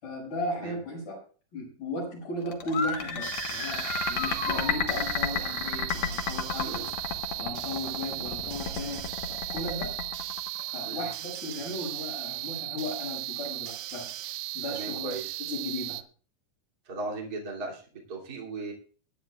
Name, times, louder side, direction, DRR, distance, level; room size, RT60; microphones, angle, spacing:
voice 1, 0.0-1.2 1.5-6.9 7.4-10.0 10.7-14.1 14.5-15.1 15.5-16.0, left 1 dB, 80° left, -1 dB, 8.0 m, -36 dB
sound 1, 2.5-11.1, left 6 dB, 55° left, 1.9 m, -32 dB
sound 2, 2.6-5.2, left 2 dB, 35° left, 3.2 m, -34 dB
sound 3, 3.2-16.0, right 16 dB, 75° right, 1.8 m, -36 dB
voice 2, 14.7-15.3 16.8-18.7, right 3 dB, 30° right, -2 dB, 3.1 m, -37 dB
23.0 x 9.9 x 2.4 m, 0.40 s
omnidirectional pair, 3.6 m